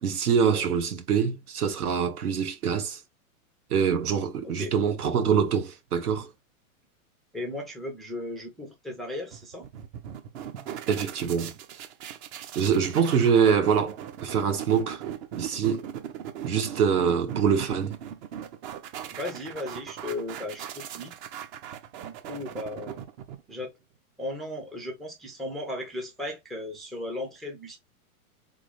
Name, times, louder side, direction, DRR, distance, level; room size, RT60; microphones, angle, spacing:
voice 1, 0.0-3.0 3.7-6.3 10.9-11.5 12.5-15.0 15.4-15.8 16.4-18.0, right 7 dB, 85° right, 1.6 m, -24 dB
voice 2, 7.3-9.7 19.1-21.1 22.0-23.0 23.5-23.7 24.2-27.8, left 1 dB, ahead, 0.4 m, -36 dB
sound 1, 9.3-23.7, right 9 dB, 50° right, 0.9 m, -39 dB
4.2 x 3.7 x 3.2 m
hypercardioid pair, 135°, 43 cm